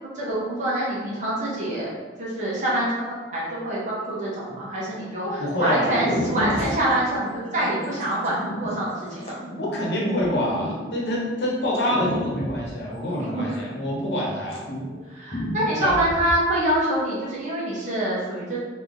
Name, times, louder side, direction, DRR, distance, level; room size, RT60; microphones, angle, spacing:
voice 1, 0.1-1.9 2.2-9.4 13.1-13.4 15.1-18.6, right 1 dB, 45° right, -6 dB, 1.2 m, -25 dB
sound 1, 4.5-5.0 5.6-5.7 5.9-11.2 11.7-14.2 14.4-15.0 15.3-16.3, equal, 35° left, 0.8 m, -32 dB
voice 2, 5.2-6.0 9.6-14.6 15.8-16.0, left 1 dB, 70° left, -3 dB, 1.0 m, -26 dB
3.5 x 2.9 x 3.7 m, 1.3 s
head